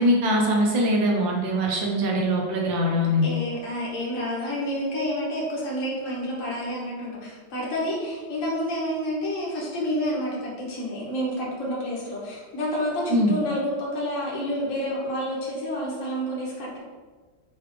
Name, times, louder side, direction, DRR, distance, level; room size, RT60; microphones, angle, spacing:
voice 1, 0.0-3.3 13.1-13.3, equal, 75° right, -1 dB, 1.5 m, -22 dB
voice 2, 3.2-16.8, equal, 50° left, -5 dB, 1.1 m, -29 dB
3.9 x 3.2 x 3.1 m, 1.3 s
omnidirectional pair, 2.1 m